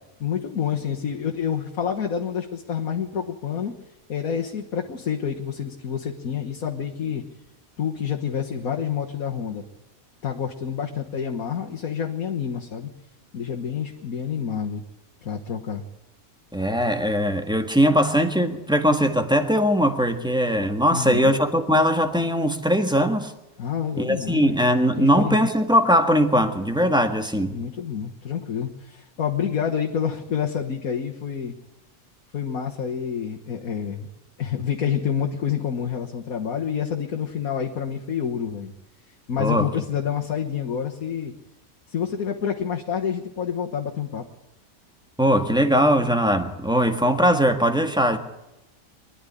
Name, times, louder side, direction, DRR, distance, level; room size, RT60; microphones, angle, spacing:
voice 1, 0.2-3.7 4.1-7.2 7.8-9.6 10.2-12.9 13.3-14.8 15.2-15.8 20.9-21.3 23.6-24.6 25.0-25.5 27.5-31.5 32.3-34.1 34.4-38.7 39.3-41.3 41.9-44.2, left 8 dB, 85° left, 1 dB, 1.8 m, -28 dB
voice 2, 16.5-23.3 24.0-27.6 39.4-39.7 45.2-48.2, equal, 5° right, 6 dB, 1.5 m, -20 dB
24.0 x 11.5 x 10.0 m, 0.92 s
omnidirectional pair, 1.5 m